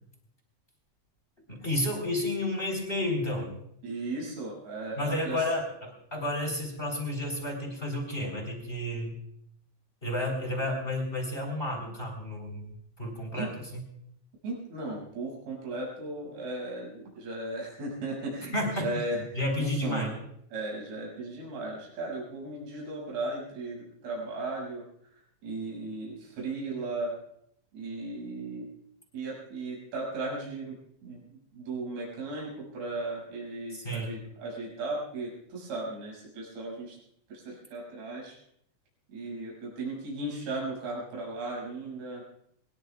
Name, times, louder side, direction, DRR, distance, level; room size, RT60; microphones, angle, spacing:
voice 1, 1.5-3.5 5.0-9.2 10.0-13.8 18.5-18.9 19.3-20.1 33.7-34.1, left 1 dB, 15° left, 1 dB, 3.1 m, -31 dB
voice 2, 3.8-5.4 13.3-13.5 14.4-20.1 20.5-24.8 25.4-27.2 27.7-28.7 29.1-37.0 37.3-38.4 39.1-42.2, right 2 dB, 60° right, -4 dB, 8.2 m, -36 dB
24.0 x 20.5 x 2.4 m, 0.73 s
omnidirectional pair, 5.4 m